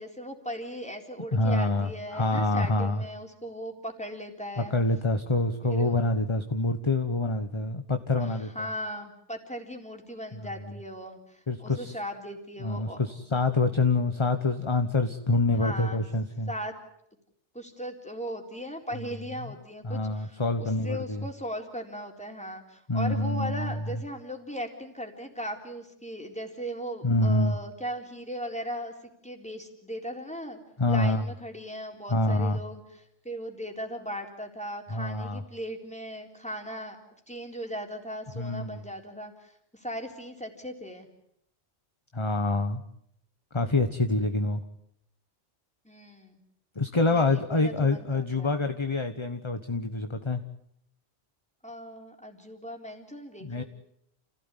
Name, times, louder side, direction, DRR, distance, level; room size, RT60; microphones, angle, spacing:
voice 1, 0.0-4.8 5.7-6.0 8.2-13.0 15.5-16.0 16.5-16.7 17.5-28.9 29.2-30.6 30.9-32.8 33.2-37.0 37.3-41.1 45.9-46.4 47.1-48.6 51.6-53.6, equal, 5° left, 3 dB, 3.9 m, -38 dB
voice 2, 1.3-3.0 4.6-8.7 10.3-10.7 11.5-12.0 12.6-16.5 19.0-19.1 19.8-21.3 22.9-24.0 27.0-27.6 30.8-31.3 32.1-32.6 34.9-35.4 38.3-38.9 42.1-42.8 43.5-44.6 46.7-50.4 53.4-53.6, left 2 dB, 25° left, 8 dB, 1.2 m, -26 dB
29.5 x 16.5 x 9.9 m, 0.74 s
omnidirectional pair, 1.2 m